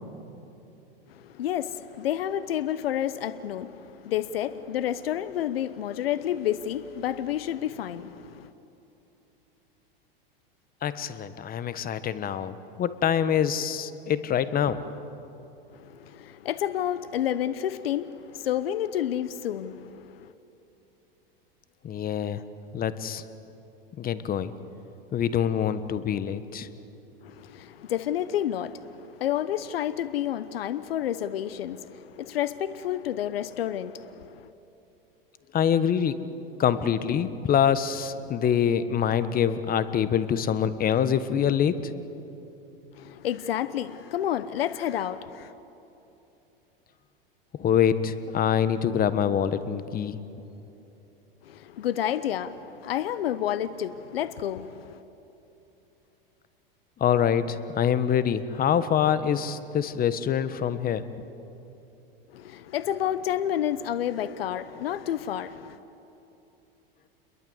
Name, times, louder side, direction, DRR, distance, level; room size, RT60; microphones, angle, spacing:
voice 1, 1.1-8.5 15.7-20.3 27.2-34.5 42.9-45.5 51.4-55.0 62.3-65.8, left 11 dB, 85° left, 0.9 m, -30 dB
voice 2, 10.8-14.8 21.8-22.4 22.7-23.2 24.0-24.5 25.1-26.7 35.5-36.2 36.6-41.9 47.5-50.2 57.0-61.0, left 8 dB, 30° left, 1.4 m, -25 dB
28.5 x 22.0 x 8.0 m
hypercardioid pair, 105°, 29 cm